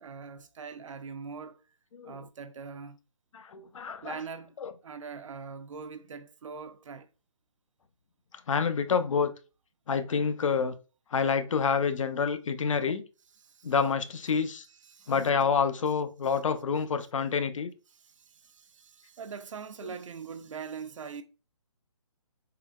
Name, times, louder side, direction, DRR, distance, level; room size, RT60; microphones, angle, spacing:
voice 1, 0.0-1.6 2.0-3.0 4.0-4.5 4.8-7.1 13.4-13.7 14.9-15.1 17.9-21.2, right 6 dB, 70° right, 0.4 m, -42 dB
voice 2, 1.9-2.3 3.3-4.2 4.6-4.7 8.5-9.3 9.9-10.7 11.1-13.0 13.6-14.7 15.1-17.7, left 6 dB, 75° left, 0.4 m, -28 dB
3.7 x 2.1 x 2.2 m
hypercardioid pair, 160°, 17 cm